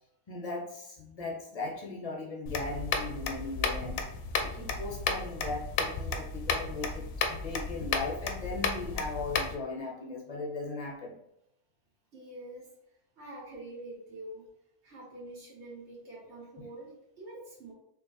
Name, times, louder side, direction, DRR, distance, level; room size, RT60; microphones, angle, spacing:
voice 1, 0.3-4.1 4.4-11.2 16.6-16.7, left 3 dB, 35° left, -1 dB, 0.7 m, -38 dB
sound 1, 2.5-9.6, left 4 dB, 90° left, 1.0 m, -33 dB
voice 2, 12.1-12.7 13.2-14.5 14.8-17.7, right 1 dB, 55° right, -5 dB, 1.7 m, -46 dB
4.3 x 2.7 x 3.2 m, 0.79 s
omnidirectional pair, 1.4 m